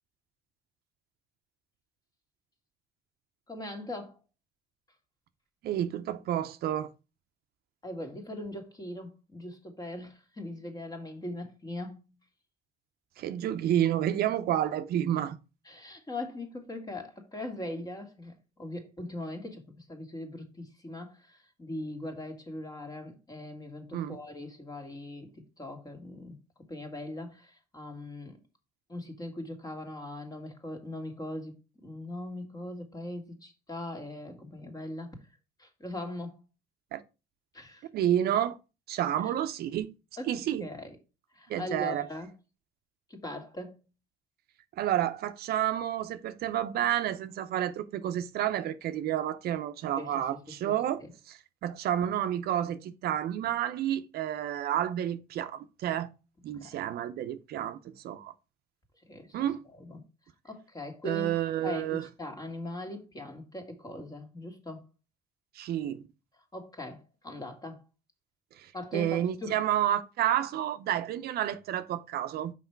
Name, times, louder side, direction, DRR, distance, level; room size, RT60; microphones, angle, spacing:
voice 1, 3.5-4.2 7.8-12.0 15.7-25.3 25.6-28.4 28.9-31.6 31.8-35.2 35.6-36.4 37.5-37.9 40.2-40.3 40.6-41.0 41.3-42.3 43.1-43.8 50.0-50.4 50.6-50.7 51.0-51.1 56.6-56.8 59.1-59.5 59.7-60.0 60.4-61.3 61.6-64.8 66.5-67.8 68.7-69.6, left 1 dB, 20° left, 1.9 m, -40 dB
voice 2, 5.6-6.9 13.2-15.4 23.9-24.2 36.9-37.0 37.9-38.6 38.9-39.9 40.3-40.7 41.5-42.1 44.8-51.0 51.3-56.1 56.4-57.8 58.0-58.3 59.3-59.6 61.0-62.1 65.6-66.1 68.6-72.5, right 11 dB, 65° right, 0.7 m, -30 dB
5.8 x 4.8 x 4.4 m
cardioid pair, 110°, 17 cm